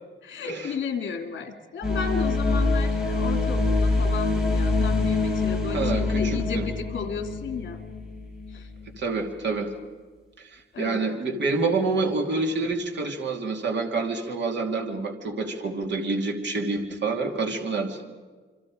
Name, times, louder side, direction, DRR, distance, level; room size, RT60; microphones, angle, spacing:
voice 1, 0.2-7.8 8.5-8.7 10.7-11.4, left 5 dB, 70° left, 5 dB, 2.8 m, -33 dB
sound 1, 1.8-8.8, left 3 dB, 5° right, 5.1 m, -25 dB
voice 2, 5.7-6.7 9.0-9.7 10.4-18.0, right 3 dB, 65° right, 2 dB, 2.8 m, -27 dB
27.5 x 25.5 x 5.1 m, 1.5 s
wide cardioid pair, 180°, 20 cm